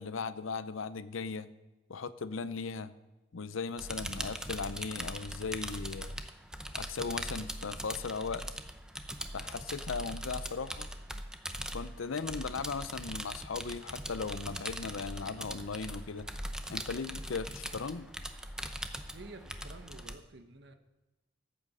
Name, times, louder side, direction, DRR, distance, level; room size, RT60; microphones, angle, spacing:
voice 1, 0.0-1.5 1.9-2.9 3.3-6.2 6.7-8.4 9.3-10.9 11.7-16.3 16.7-18.1, left 4 dB, 85° left, 14 dB, 0.6 m, -37 dB
sound 1, 3.8-20.2, right 1 dB, 5° right, 0.6 m, -41 dB
voice 2, 19.1-20.7, right 2 dB, 60° right, 7 dB, 1.1 m, -50 dB
14.0 x 8.7 x 5.5 m, 1.1 s
head